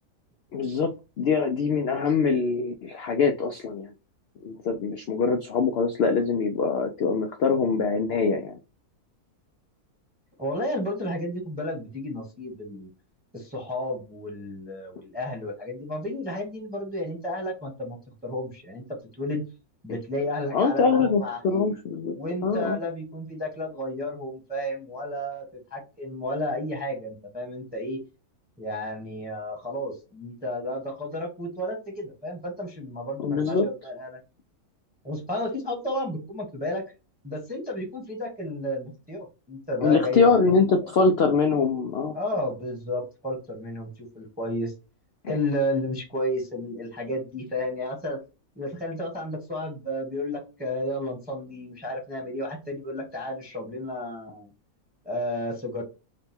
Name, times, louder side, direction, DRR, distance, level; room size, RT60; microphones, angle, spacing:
voice 1, 0.5-0.9 1.2-3.9 4.4-8.6 20.5-22.1 22.4-22.8 33.2-33.7 39.8-42.1, left 4 dB, 80° left, 5 dB, 0.5 m, -23 dB
voice 2, 10.4-12.9 13.3-18.8 19.2-19.4 19.8-21.7 22.1-28.0 28.6-34.2 35.0-36.8 37.2-40.4 40.8-40.9 42.1-44.7 45.3-48.2 48.6-54.5 55.0-55.8, left 1 dB, 5° right, 0 dB, 0.9 m, -32 dB
3.9 x 2.2 x 4.2 m, 0.30 s
omnidirectional pair, 1.6 m